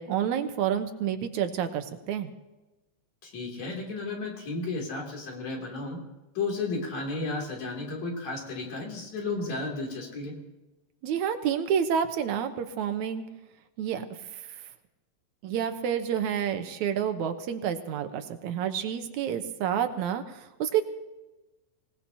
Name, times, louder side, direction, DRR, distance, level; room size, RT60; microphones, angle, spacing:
voice 1, 0.0-2.3 11.0-13.2 13.8-14.1 15.4-20.2 20.6-20.8, right 8 dB, 80° right, 8 dB, 2.4 m, -29 dB
voice 2, 3.2-6.0 6.4-10.4, left 3 dB, 65° left, 0 dB, 4.3 m, -33 dB
25.0 x 18.5 x 2.9 m, 1.1 s
omnidirectional pair, 3.3 m